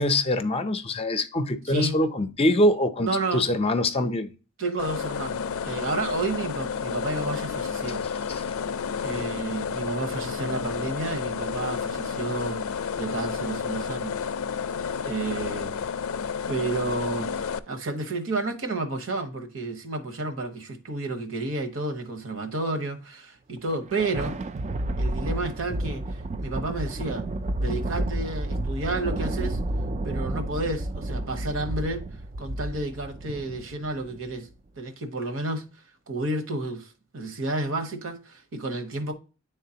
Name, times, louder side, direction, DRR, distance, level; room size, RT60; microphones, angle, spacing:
voice 1, 0.0-4.3 8.3-8.4, left 1 dB, 30° left, 0.6 m, -24 dB
voice 2, 1.7-2.0 3.0-3.5 4.6-8.1 9.0-12.7 13.0-14.2 15.0-15.9 16.5-24.4 25.0-27.3 27.6-29.6 30.0-32.1 32.4-34.5 34.8-35.6 36.1-39.1, right 2 dB, 70° right, 1.1 m, -31 dB
sound 1, 4.8-17.6, left 6 dB, 85° left, 0.4 m, -31 dB
Thunder, 23.6-34.3, right 1 dB, 35° right, 0.4 m, -31 dB
9.9 x 3.7 x 2.8 m
head